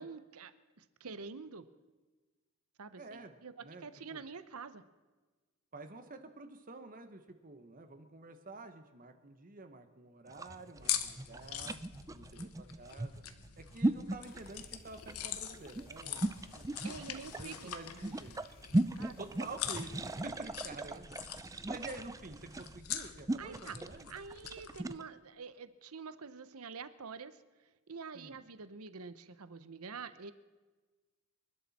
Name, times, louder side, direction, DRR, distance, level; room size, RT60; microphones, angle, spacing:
voice 1, 0.0-1.7 2.8-4.8 16.8-17.7 19.0-19.3 23.4-23.8 24.1-27.4 27.9-30.3, right 5 dB, 75° right, 13 dB, 0.9 m, -47 dB
voice 2, 3.0-3.3 3.6-3.8 4.1-4.2 5.7-11.8 12.1-13.2 13.6-16.3 16.5-16.7 17.4-18.4 19.2-21.2 21.6-24.1 28.1-28.4, right 3 dB, 40° right, 8 dB, 1.2 m, -49 dB
sound 1, 10.3-25.0, right 1 dB, 15° right, 0.4 m, -37 dB
sound 2, 10.8-24.8, left 10 dB, 80° left, 1.1 m, -44 dB
sound 3, 14.2-20.5, left 1 dB, 45° left, 2.1 m, -61 dB
27.5 x 12.0 x 4.3 m, 1.3 s
head